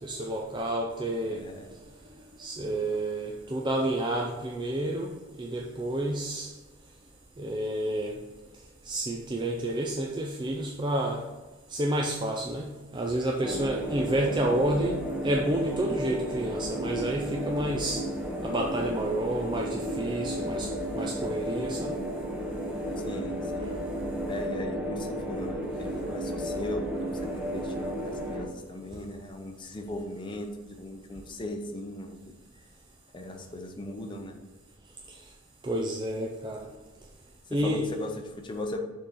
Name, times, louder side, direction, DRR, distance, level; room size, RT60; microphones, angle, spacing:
voice 1, 0.0-1.4 2.4-6.5 7.4-8.1 8.9-11.2 11.7-18.0 18.4-20.7 20.9-21.9 35.6-36.7 37.5-37.8, right 1 dB, 20° right, 0 dB, 0.4 m, -30 dB
voice 2, 1.3-1.7 13.4-13.7 23.0-23.7 24.3-27.1 27.3-32.2 33.1-34.4 37.5-38.8, left 1 dB, 20° left, 3 dB, 0.7 m, -38 dB
sound 1, 13.4-28.5, equal, 5° right, 0.9 m, -33 dB
6.5 x 3.7 x 5.7 m, 1.2 s
head